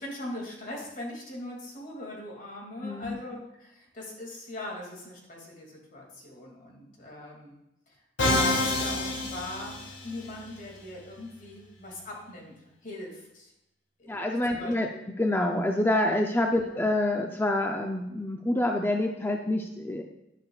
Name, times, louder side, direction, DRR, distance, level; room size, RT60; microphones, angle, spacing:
voice 1, 0.0-7.5 7.9-8.0 8.3-9.8 10.0-13.5 14.0-15.0 16.6-16.8, left 1 dB, 45° left, -1 dB, 2.4 m, -41 dB
voice 2, 2.8-3.2 14.1-14.9 15.2-20.0, left 1 dB, 10° left, 3 dB, 0.5 m, -27 dB
Musical instrument, 8.2-10.3, left 2 dB, 90° left, 1.8 m, -27 dB
10.5 x 10.5 x 2.4 m, 0.87 s
head